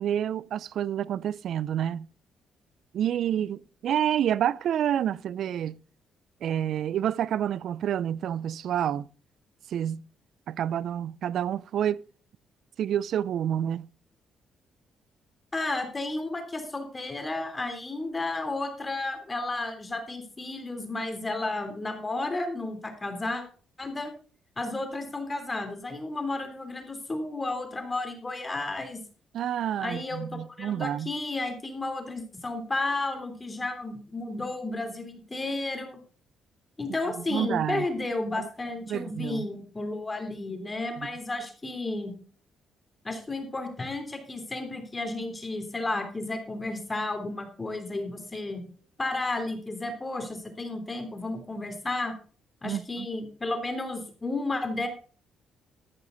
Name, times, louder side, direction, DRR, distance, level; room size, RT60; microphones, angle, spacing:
voice 1, 0.0-2.1 2.9-5.8 6.4-9.1 9.7-10.0 10.5-12.0 12.8-13.9 29.3-31.1 37.3-37.9 38.3-38.5 38.9-39.5 41.0-41.1 52.6-53.1, right 10 dB, 70° right, 0.4 m, -28 dB
voice 2, 15.5-23.4 23.8-24.1 24.6-29.0 29.8-36.0 36.8-42.1 43.0-48.6 49.0-52.1 52.6-54.9, left 2 dB, 20° left, 3.2 m, -32 dB
14.0 x 9.9 x 3.9 m
cardioid pair, 90°, 0 cm